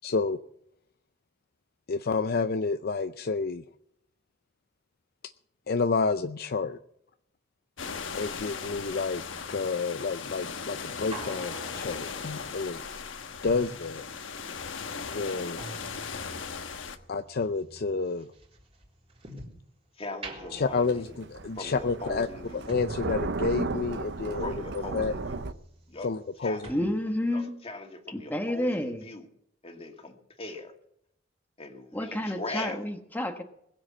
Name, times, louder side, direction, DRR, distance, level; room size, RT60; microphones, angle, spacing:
voice 1, 0.0-0.4 1.9-3.6 5.7-6.8 8.1-9.2 9.5-12.8 13.4-14.0 15.0-15.6 17.1-18.3 20.5-22.3 22.5-25.1 26.0-26.7, left 4 dB, 55° left, 10 dB, 0.6 m, -29 dB
sound 1, 7.8-17.0, left 5 dB, 75° left, 1.2 m, -38 dB
sound 2, 8.6-14.6 14.8-19.7 20.1-26.4 26.6-26.7, right 1 dB, 30° right, 3.8 m, -47 dB
voice 2, 20.0-21.1 21.6-22.7 24.4-25.4 25.9-26.1 26.4-26.7 27.3-29.3 29.6-30.7 31.6-32.8, left 2 dB, 30° left, 4 dB, 2.1 m, -40 dB
Thunder, 20.6-25.5, right 3 dB, 65° right, 0.8 m, -34 dB
voice 3, 26.7-27.5 28.1-29.0 31.9-33.4, left 1 dB, 10° left, 4 dB, 1.2 m, -30 dB
21.0 x 7.7 x 7.4 m, 0.73 s
head